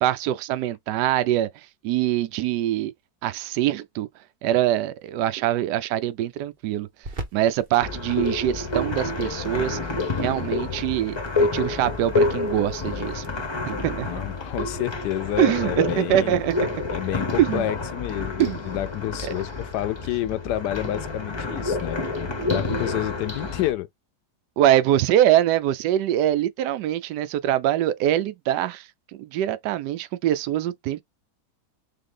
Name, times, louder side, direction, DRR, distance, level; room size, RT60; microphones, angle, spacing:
voice 1, 0.0-1.5 1.8-2.9 3.2-4.1 4.4-6.9 7.3-9.8 10.2-13.2 13.7-14.1 15.4-16.8 17.4-17.7 18.4-18.6 19.2-19.3 24.6-31.0, right 12 dB, 80° right, 1.2 m, -23 dB
sound 1, 5.0-17.2, right 2 dB, 35° right, 0.9 m, -47 dB
sound 2, 7.8-23.7, left 3 dB, 20° left, 0.8 m, -28 dB
voice 2, 14.1-16.4 16.9-22.0 22.4-23.9, left 13 dB, 75° left, 1.1 m, -29 dB
3.8 x 3.2 x 3.7 m
omnidirectional pair, 1.8 m